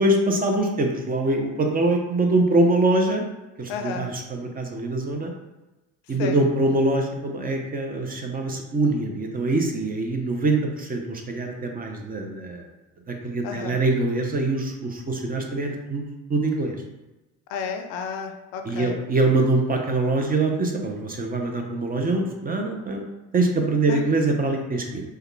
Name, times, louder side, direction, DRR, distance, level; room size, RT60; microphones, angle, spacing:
voice 1, 0.0-3.2 3.6-5.3 6.1-12.7 13.1-16.8 18.6-23.0 23.3-25.0, right 2 dB, 25° right, 2 dB, 0.6 m, -24 dB
voice 2, 3.7-4.1 6.2-6.4 13.4-13.8 17.5-18.9 23.9-24.0, left 6 dB, 70° left, 6 dB, 0.5 m, -32 dB
3.4 x 2.3 x 3.2 m, 1.1 s
hypercardioid pair, 70°, 37 cm